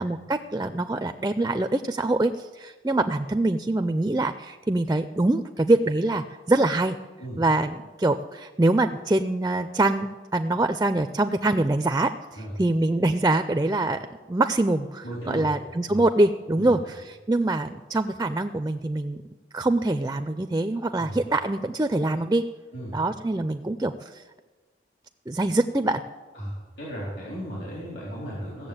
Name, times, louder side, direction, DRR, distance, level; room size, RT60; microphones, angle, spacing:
voice 1, 0.0-6.9 7.4-19.2 19.5-22.5 22.9-23.9 25.3-26.0, right 2 dB, 15° right, 9 dB, 0.4 m, -24 dB
voice 2, 15.0-15.5 15.9-16.0 16.6-16.8 21.0-21.2 22.7-22.9 26.3-28.7, equal, 65° left, -5 dB, 4.0 m, -35 dB
16.0 x 7.2 x 8.8 m, 1.3 s
head